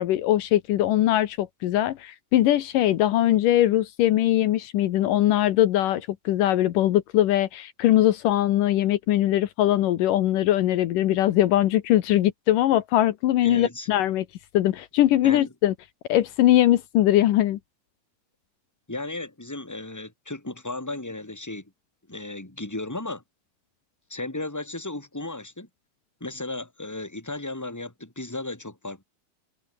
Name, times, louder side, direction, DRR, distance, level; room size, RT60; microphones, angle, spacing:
voice 1, 0.0-14.2 14.5-15.7 16.1-17.6, left 13 dB, 75° left, 2.7 m, -21 dB
voice 2, 13.4-13.9 15.2-15.5 18.9-21.7 22.1-23.2 24.1-25.7 26.2-29.0, left 2 dB, 5° left, 3.6 m, -35 dB
omnidirectional pair, 3.9 m